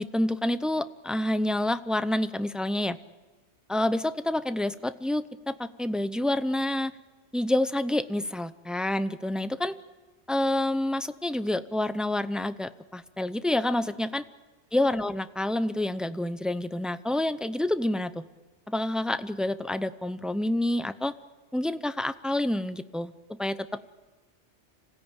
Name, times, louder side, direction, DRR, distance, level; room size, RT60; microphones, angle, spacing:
voice 1, 0.0-3.0 3.7-6.9 7.3-9.8 10.3-14.2 14.7-18.2 18.7-21.1 21.5-23.1 23.4-23.7, left 1 dB, ahead, 12 dB, 0.4 m, -28 dB
26.5 x 17.0 x 8.9 m, 1.3 s
omnidirectional pair, 1.2 m